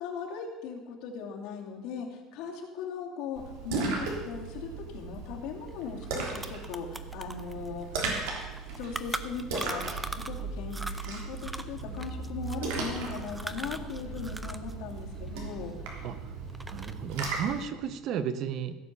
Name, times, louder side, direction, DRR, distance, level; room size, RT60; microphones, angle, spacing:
voice 1, 0.0-8.0 8.8-16.1, left 6 dB, 70° left, 0 dB, 2.8 m, -39 dB
Splash splatter, 3.3-17.6, right 4 dB, 90° right, 3.2 m, -37 dB
sound 1, 5.7-5.8 6.0-10.4 10.7-14.7 15.0-16.1 16.5-17.1, right 2 dB, 10° right, 0.6 m, -40 dB
voice 2, 16.7-18.8, right 8 dB, 50° right, 12 dB, 0.9 m, -33 dB
16.0 x 7.2 x 6.9 m, 1.2 s
cardioid pair, 155°, 0 cm